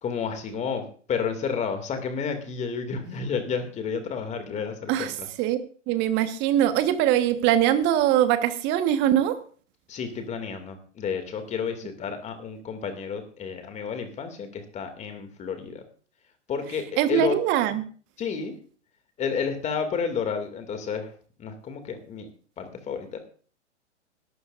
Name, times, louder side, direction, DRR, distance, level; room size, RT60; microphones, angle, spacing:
voice 1, 0.0-5.1 9.9-15.8 16.5-16.8 17.1-17.4 18.2-18.5 19.2-21.1 21.4-22.3 22.6-23.2, left 6 dB, 20° left, 7 dB, 2.4 m, -31 dB
voice 2, 5.9-9.4 17.0-17.8, right 11 dB, 30° right, 10 dB, 1.4 m, -22 dB
20.5 x 12.0 x 2.6 m, 0.41 s
figure-of-eight pair, 115°, 36 cm